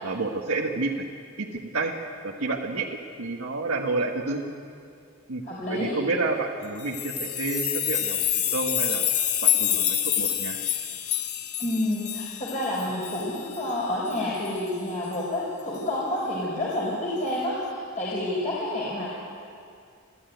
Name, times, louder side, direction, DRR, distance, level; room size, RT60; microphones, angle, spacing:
voice 1, 0.0-1.1 1.4-1.9 2.2-4.4 5.3-5.4 5.7-9.0 9.4-10.6, right 3 dB, 90° right, 0 dB, 1.5 m, -29 dB
voice 2, 5.4-6.0 11.6-19.1, left 1 dB, 35° left, -6 dB, 4.3 m, -29 dB
sound 1, 6.8-13.6 14.1-14.2 14.4-14.6 15.1-15.2, left 10 dB, 85° left, 1.6 m, -27 dB
28.0 x 13.0 x 9.4 m, 2.4 s
head